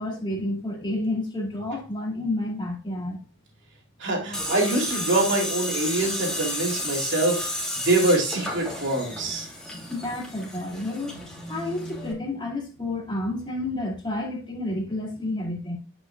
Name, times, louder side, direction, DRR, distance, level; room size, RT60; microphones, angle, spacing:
voice 1, 0.0-3.2 9.7-11.1 11.5-15.8, left 1 dB, 25° left, 2.2 m, -30 dB
voice 2, 4.0-9.5, right 2 dB, 60° right, 2.9 m, -25 dB
Tools, 4.3-12.1, left 1 dB, 5° left, 3.0 m, -32 dB
9.4 x 6.0 x 2.3 m
head